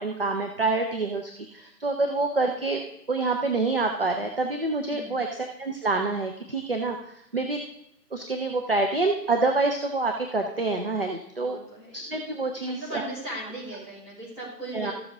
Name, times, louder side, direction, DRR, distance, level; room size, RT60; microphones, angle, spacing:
voice 1, 0.0-2.8 3.1-7.6 8.1-11.6 11.9-13.1 14.7-14.9, right 3 dB, 35° right, 4 dB, 0.7 m, -27 dB
voice 2, 4.8-5.3 11.4-12.0 12.7-14.9, right 1 dB, 10° right, -11 dB, 3.8 m, -38 dB
14.0 x 7.3 x 3.6 m, 0.80 s
figure-of-eight pair, 165°, 50 cm